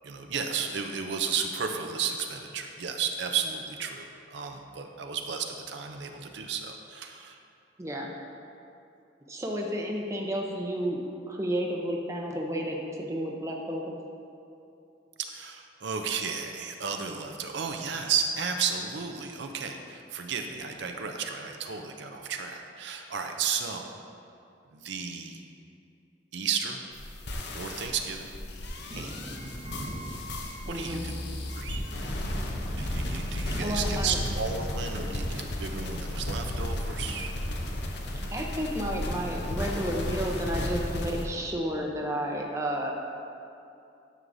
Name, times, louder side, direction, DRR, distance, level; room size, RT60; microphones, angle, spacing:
voice 1, 0.0-7.4 15.2-23.9 24.7-25.4 26.3-26.8 27.5-28.3 28.9-29.2 30.6-31.2 31.5-31.8 32.8-37.3, right 6 dB, 65° right, 4 dB, 0.5 m, -33 dB
voice 2, 7.8-8.1 9.3-11.0 11.3-14.0 30.7-31.1 33.6-34.2 38.3-42.9, equal, 15° right, -1 dB, 0.6 m, -31 dB
sound 1, 26.9-41.3, left 1 dB, 60° left, 0.7 m, -34 dB
Wind / Thunder, 28.6-36.9 37.2-37.3, equal, 25° left, 1.0 m, -43 dB
11.0 x 6.3 x 2.6 m, 2.6 s
head